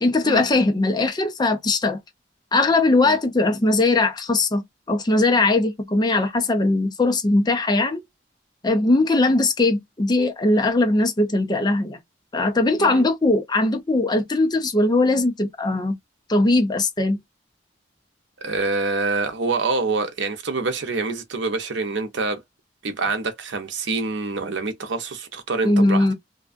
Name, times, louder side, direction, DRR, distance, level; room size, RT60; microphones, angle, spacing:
voice 1, 0.0-2.0 2.5-8.0 8.6-12.0 12.3-16.0 16.3-17.2 25.6-26.1, left 2 dB, 25° left, 0.5 m, -20 dB
voice 2, 18.4-22.4 22.8-26.1, right 3 dB, 85° right, 0.7 m, -26 dB
2.6 x 2.2 x 2.5 m
head